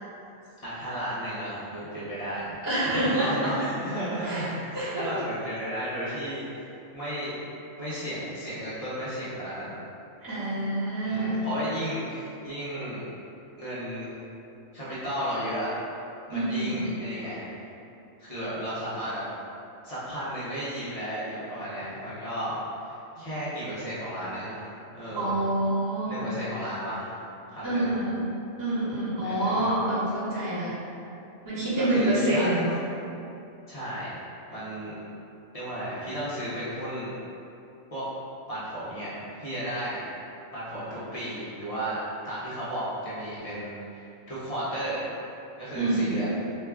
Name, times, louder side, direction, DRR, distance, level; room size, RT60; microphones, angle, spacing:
voice 1, 0.6-2.6 2.9-6.5 6.9-7.4 7.8-9.7 11.0-13.1 13.6-14.1 14.7-15.7 16.3-17.7 18.2-19.2 19.8-25.4 26.0-27.1 27.5-28.0 29.2-29.7 31.8-32.5 33.7-34.1 34.5-35.0 35.5-37.1 37.9-38.0 38.5-40.0 40.5-45.0 45.6-46.3, right 1 dB, 35° left, -11 dB, 0.6 m, -34 dB
voice 2, 2.6-3.5 4.3-4.4 4.7-5.1 10.2-11.4 16.3-16.8 25.2-26.3 27.6-28.2 28.6-30.7 31.4-32.7 45.7-46.2, right 1 dB, 15° right, -13 dB, 1.1 m, -27 dB
3.0 x 2.3 x 3.4 m, 2.7 s
omnidirectional pair, 1.4 m